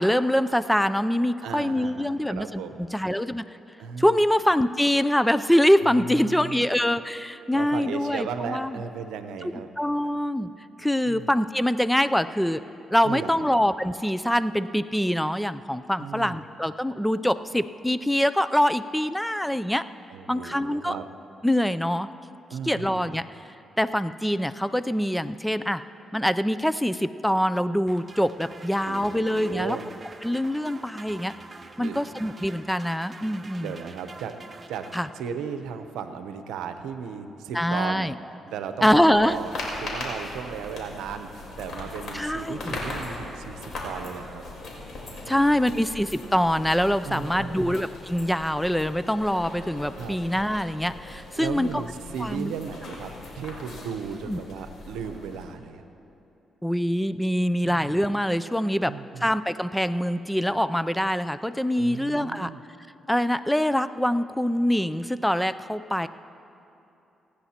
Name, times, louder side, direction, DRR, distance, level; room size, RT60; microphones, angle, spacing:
voice 1, 0.0-3.4 4.0-8.8 9.8-10.5 10.8-12.6 12.9-19.8 20.3-21.0 21.4-22.1 22.6-23.2 23.8-25.8 26.1-29.8 30.2-31.3 31.8-33.7 34.9-35.1 37.5-38.1 38.8-39.4 42.1-42.8 45.3-51.8 52.2-52.5 54.3-54.4 56.6-58.9 59.2-62.5 63.1-66.1, equal, 5° left, 13 dB, 0.4 m, -24 dB
voice 2, 1.4-2.9 3.8-4.1 5.8-6.7 7.5-9.7 11.0-11.3 13.0-13.5 16.0-16.4 20.1-21.1 22.5-23.2 28.9-29.9 31.8-32.0 33.6-34.4 34.7-34.9 35.1-38.1 38.5-39.5 39.8-41.3 41.6-44.4 45.1-45.8 47.0-47.8 50.0-50.2 51.4-55.8 57.6-57.9 58.8-59.2 61.8-62.6, right 7 dB, 90° right, 8 dB, 0.7 m, -36 dB
sound 1, 27.9-35.6, right 3 dB, 30° right, 0.9 m, -46 dB
sound 2, 39.1-55.4, left 2 dB, 65° left, 3.7 m, -39 dB
28.5 x 10.0 x 2.9 m, 2.9 s
supercardioid pair, 65°, 0 cm